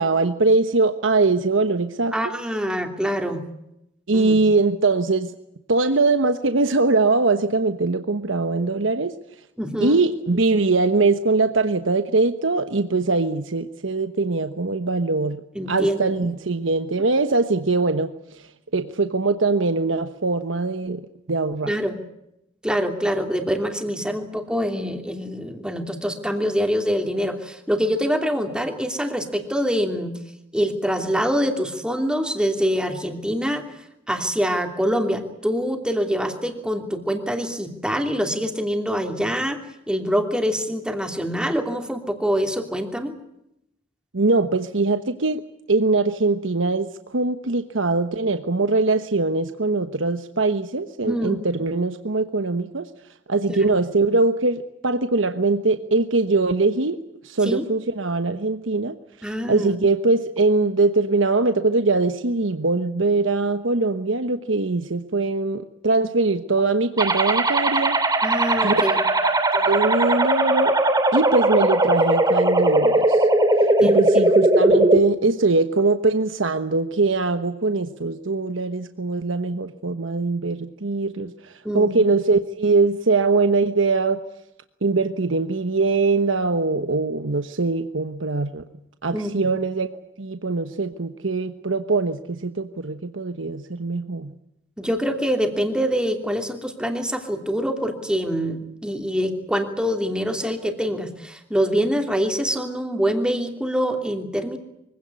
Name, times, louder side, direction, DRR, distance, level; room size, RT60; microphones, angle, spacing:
voice 1, 0.0-2.1 4.1-5.3 5.7-9.1 9.8-15.4 15.7-18.1 18.7-21.7 44.1-45.4 45.7-52.9 53.3-57.0 57.2-58.9 59.5-68.0 68.6-68.8 69.2-70.7 71.1-73.3 73.8-84.2 84.8-88.6 89.0-89.9 90.2-94.3, right 3 dB, 80° right, 9 dB, 1.2 m, -22 dB
voice 2, 2.1-3.4 4.1-4.4 9.6-10.0 15.5-16.0 21.7-22.0 22.6-30.1 30.5-33.7 34.1-43.2 51.0-51.4 53.5-53.7 57.4-57.6 59.2-59.8 68.2-69.0 73.8-74.0 81.6-82.0 89.1-89.3 94.8-104.6, equal, 5° right, 4 dB, 3.0 m, -25 dB
sound 1, 67.0-75.0, right 2 dB, 20° right, 2.5 m, -19 dB
24.0 x 17.0 x 9.8 m, 0.83 s
head